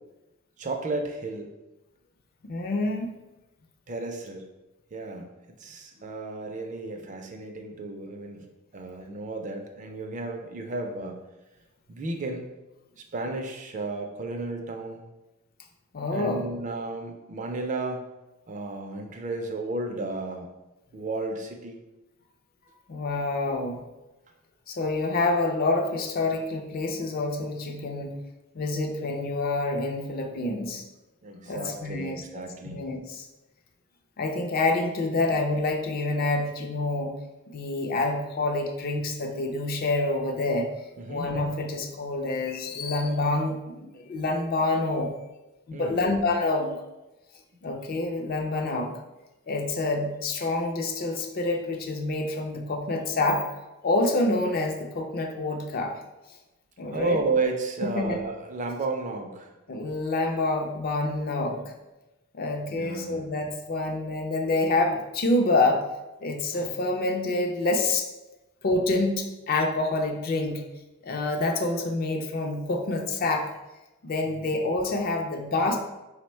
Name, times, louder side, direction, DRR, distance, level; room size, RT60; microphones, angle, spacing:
voice 1, 0.6-1.5 3.9-4.4 4.9-5.3 5.6-8.5 8.7-11.2 11.9-12.5 13.0-15.0 16.1-18.0 18.5-20.5 20.9-21.8 31.2-32.8 41.0-41.3 45.7-46.0 56.8-59.5 62.7-63.2 74.2-74.5, right 3 dB, 35° right, 4 dB, 0.4 m, -33 dB
voice 2, 2.4-3.2 15.9-16.5 22.9-23.8 24.7-28.2 28.5-30.8 31.5-33.3 34.2-37.1 37.5-40.7 41.1-45.1 45.7-46.8 47.6-49.0 49.5-53.5 53.8-56.0 56.8-57.2 57.8-58.2 59.7-61.7 62.3-65.8 66.2-68.1 68.6-70.6 71.0-73.5 74.0-75.8, left 2 dB, 45° left, 3 dB, 0.4 m, -27 dB
3.3 x 2.1 x 4.3 m, 1.0 s
head